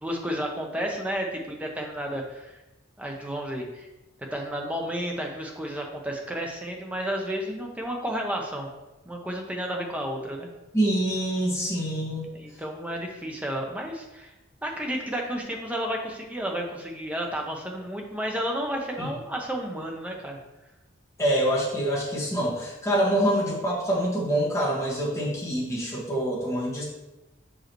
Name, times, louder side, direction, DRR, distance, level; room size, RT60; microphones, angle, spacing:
voice 1, 0.0-2.6 3.0-3.9 4.3-8.7 9.0-10.5 12.3-14.3 14.6-20.4, equal, 5° right, 1 dB, 0.7 m, -32 dB
voice 2, 10.7-12.3 19.0-19.1 21.2-26.8, right 1 dB, 15° left, -6 dB, 1.6 m, -26 dB
6.3 x 5.0 x 3.0 m, 1.0 s
head